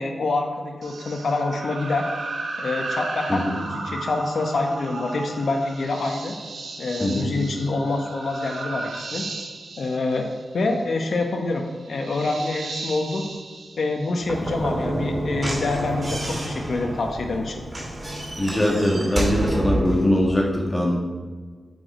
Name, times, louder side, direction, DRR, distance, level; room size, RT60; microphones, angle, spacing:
voice 1, 0.0-2.1 2.6-6.3 6.8-9.2 9.8-10.3 10.5-13.2 13.8-17.6, left 2 dB, 70° left, 3 dB, 1.1 m, -26 dB
sound 1, 0.8-14.7, right 3 dB, 90° right, 1.0 m, -35 dB
Slam / Knock, 14.2-20.1, right 1 dB, 35° right, 2.6 m, -28 dB
voice 2, 18.4-21.1, left 1 dB, 15° left, -3 dB, 1.9 m, -22 dB
8.4 x 5.0 x 5.0 m, 1.5 s
wide cardioid pair, 100°, 0 cm